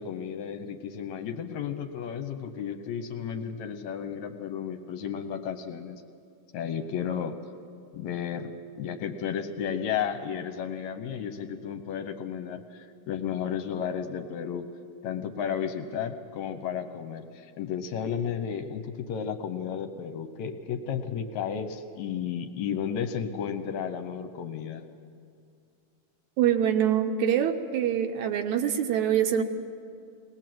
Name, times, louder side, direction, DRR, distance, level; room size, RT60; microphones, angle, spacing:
voice 1, 0.0-6.0 6.5-7.4 7.9-14.7 15.0-24.8, left 8 dB, 70° left, 8 dB, 1.9 m, -33 dB
voice 2, 26.4-29.4, right 9 dB, 75° right, 7 dB, 2.0 m, -25 dB
21.5 x 18.5 x 7.7 m, 2.4 s
omnidirectional pair, 3.7 m